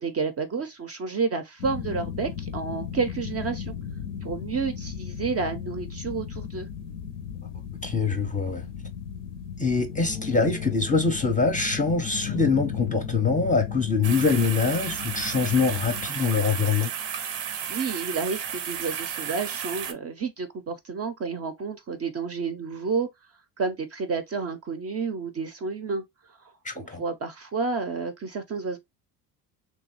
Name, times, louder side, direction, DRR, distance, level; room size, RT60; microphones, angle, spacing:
voice 1, 0.0-3.7 4.2-6.7 17.7-23.1 23.6-26.0 26.3-28.8, right 4 dB, 30° right, 0.5 m, -30 dB
sound 1, 1.6-16.1, left 8 dB, 85° left, 0.6 m, -35 dB
voice 2, 7.8-8.6 9.6-16.9 26.6-27.0, left 4 dB, 15° left, 0.5 m, -24 dB
sound 2, 14.0-19.9, right 8 dB, 85° right, 0.6 m, -33 dB
3.0 x 2.2 x 2.8 m
hypercardioid pair, 60°, 49 cm